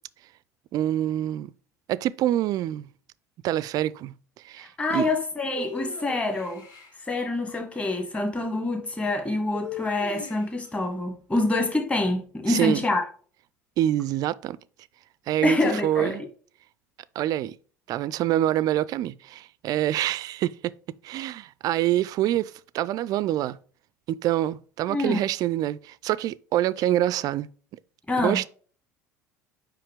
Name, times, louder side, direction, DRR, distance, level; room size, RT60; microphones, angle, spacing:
voice 1, 0.7-1.5 1.9-2.9 3.4-4.1 4.4-5.1 12.5-12.8 13.8-14.6 15.3-15.6 15.8-16.2 17.2-17.5 17.9-20.6 21.0-23.6 24.1-27.5 28.2-28.5, right 13 dB, 40° right, 0.3 m, -26 dB
voice 2, 4.8-6.6 7.1-13.0 15.4-16.2 24.9-25.2 28.1-28.4, left 2 dB, 15° left, 1.4 m, -26 dB
sound 1, 5.6-6.9 9.5-10.7, left 7 dB, 45° left, 2.0 m, -39 dB
5.7 x 5.0 x 3.3 m
figure-of-eight pair, 65°, 9 cm